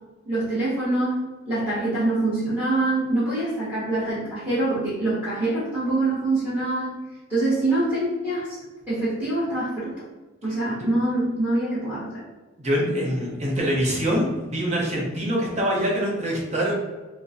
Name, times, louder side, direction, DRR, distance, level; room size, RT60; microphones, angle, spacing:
voice 1, 0.2-6.9 7.3-8.5 8.9-10.0 10.4-12.2, right 2 dB, 10° right, -14 dB, 1.4 m, -25 dB
voice 2, 12.6-16.7, equal, 35° right, -3 dB, 0.9 m, -24 dB
4.3 x 2.2 x 2.6 m, 1.2 s
head